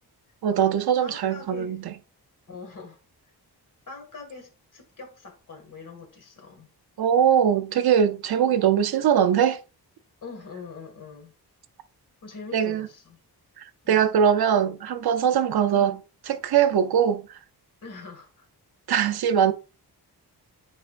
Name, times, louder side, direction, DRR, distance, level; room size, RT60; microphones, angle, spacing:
voice 1, 0.4-1.9 7.0-9.6 12.5-12.9 13.6-16.0 16.3-17.4 18.9-19.5, right 8 dB, 70° right, 0.7 m, -21 dB
voice 2, 1.0-1.7 2.5-3.0 3.9-6.7 10.2-11.4 12.2-13.2 13.8-14.1 15.7-16.0 17.8-18.5, left 4 dB, 50° left, 2.0 m, -43 dB
8.8 x 4.9 x 2.5 m
wide cardioid pair, 160°, 39 cm